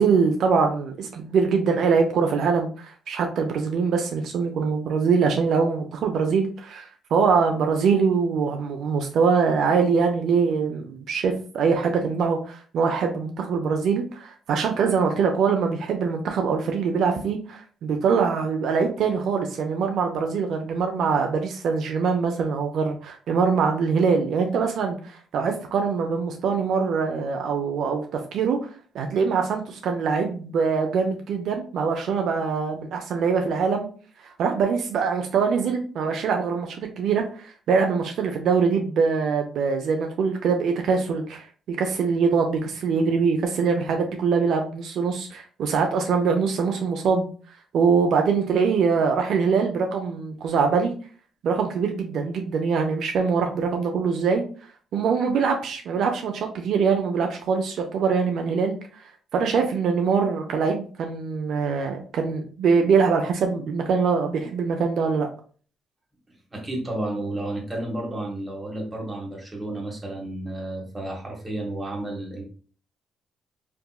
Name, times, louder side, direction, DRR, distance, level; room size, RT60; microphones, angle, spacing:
voice 1, 0.0-28.6 28.9-33.9 34.2-47.3 47.7-50.9 51.4-54.4 54.9-58.8 59.3-65.3, right 5 dB, 70° right, 3 dB, 0.4 m, -23 dB
voice 2, 66.3-72.4, right 1 dB, 20° right, -1 dB, 1.2 m, -32 dB
3.5 x 2.7 x 2.2 m, 0.41 s
cardioid pair, 90°, 0 cm